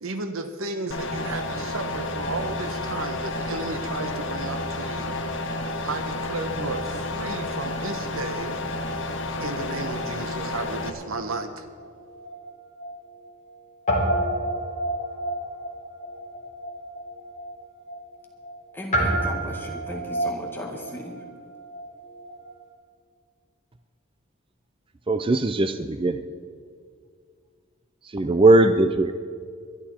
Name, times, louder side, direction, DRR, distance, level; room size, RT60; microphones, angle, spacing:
voice 1, 0.0-5.2 5.6-8.6 9.4-11.7, right 2 dB, 75° right, 8 dB, 1.1 m, -33 dB
sound 1, 0.9-10.9, left 2 dB, 60° left, 1.5 m, -31 dB
Guitar, 11.8-13.5 13.8-22.5, right 1 dB, 35° left, 3.7 m, -30 dB
voice 2, 18.7-21.1, left 1 dB, 10° left, -1 dB, 1.9 m, -36 dB
voice 3, 25.1-26.2 28.1-29.1, right 2 dB, 25° right, 9 dB, 0.5 m, -19 dB
22.0 x 12.0 x 4.4 m, 2.2 s
head